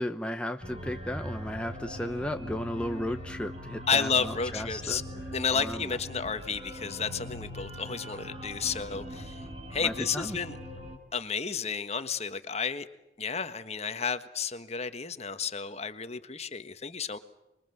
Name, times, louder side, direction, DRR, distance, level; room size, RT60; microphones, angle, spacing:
voice 1, 0.0-5.0 5.5-5.9 9.8-10.4, left 1 dB, 5° left, 6 dB, 0.9 m, -34 dB
sound 1, 0.6-11.0, equal, 35° right, 5.1 m, -41 dB
voice 2, 3.9-5.0 5.3-9.4 9.7-10.6 11.1-12.9 13.2-17.2, left 6 dB, 40° left, 11 dB, 1.5 m, -32 dB
26.0 x 23.5 x 8.0 m, 0.92 s
head